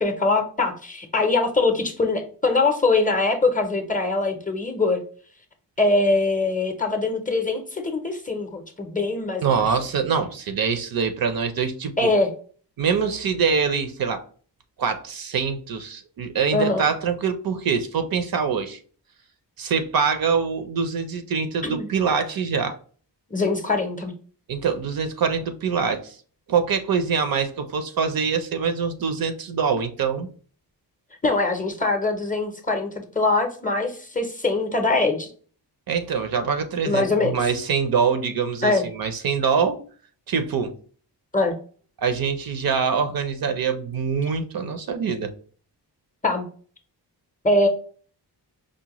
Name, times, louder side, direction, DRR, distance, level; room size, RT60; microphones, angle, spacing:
voice 1, 0.0-5.0 5.8-9.6 12.0-12.3 16.5-16.8 21.6-21.9 23.3-24.1 31.2-35.3 36.9-37.3 38.6-38.8 41.3-41.5 46.2-46.4 47.4-47.7, left 3 dB, 20° left, 0.5 m, -22 dB
voice 2, 9.4-12.1 12.8-14.2 14.8-18.8 19.6-22.8 24.5-26.2 26.5-30.3 35.9-39.8 40.3-40.7 42.0-45.3, right 6 dB, 55° right, 0.5 m, -24 dB
5.0 x 2.1 x 2.9 m
wide cardioid pair, 115°, 42 cm